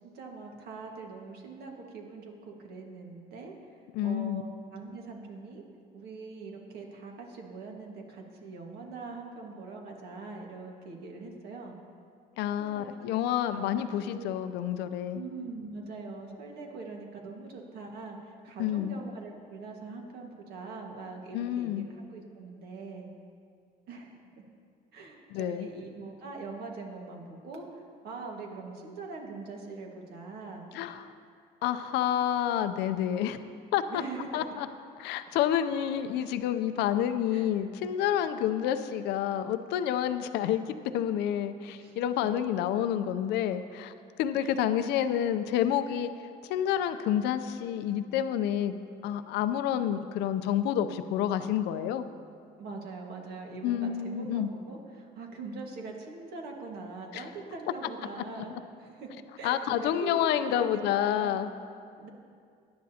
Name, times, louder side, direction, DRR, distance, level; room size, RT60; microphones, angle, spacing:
voice 1, 0.0-3.5 4.0-5.6 5.9-11.7 12.6-12.8 13.5-14.3 15.1-23.1 23.9-24.1 24.9-30.7 33.9-34.5 37.3-37.5 41.8-42.0 44.4-44.6 52.6-58.5 58.8-61.4 62.0-62.1, right 4 dB, 70° right, 1 dB, 1.7 m, -42 dB
voice 2, 3.9-4.4 12.4-15.2 18.6-19.0 21.3-21.9 25.3-25.7 30.7-31.1 31.6-33.4 33.7-34.0 34.3-34.7 35.0-40.6 40.9-43.9 44.2-46.1 46.5-48.7 49.0-52.0 53.6-54.5 57.1-57.2 58.4-58.5 59.4-61.5, left 10 dB, 85° left, 10 dB, 0.5 m, -29 dB
17.0 x 10.5 x 2.8 m, 2.3 s
cardioid pair, 110°, 17 cm